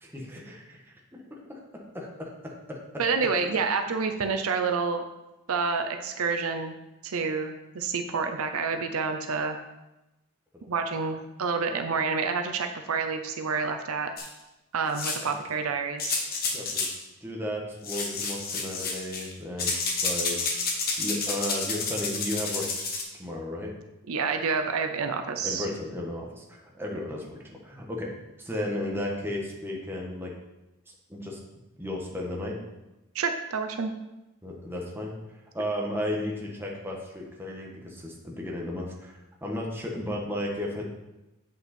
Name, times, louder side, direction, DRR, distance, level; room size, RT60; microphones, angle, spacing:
voice 1, 0.0-0.9 1.5-2.8 10.5-10.7 15.2-15.3 16.5-19.7 20.0-20.4 21.0-23.7 25.4-28.1 28.4-30.3 31.1-31.4 31.8-32.6 34.4-35.1 35.5-39.1 39.4-40.8, left 1 dB, 10° right, -2 dB, 1.3 m, -34 dB
voice 2, 3.0-5.0 5.5-6.7 7.0-9.6 10.7-14.1 14.7-16.2 24.1-25.7 33.1-33.9, right 5 dB, 75° right, 6 dB, 0.6 m, -28 dB
sound 1, 14.2-14.3 14.9-15.3 16.0-17.0 17.8-19.3 19.6-23.0, left 4 dB, 45° left, 1.2 m, -30 dB
8.1 x 5.3 x 4.3 m, 0.98 s
head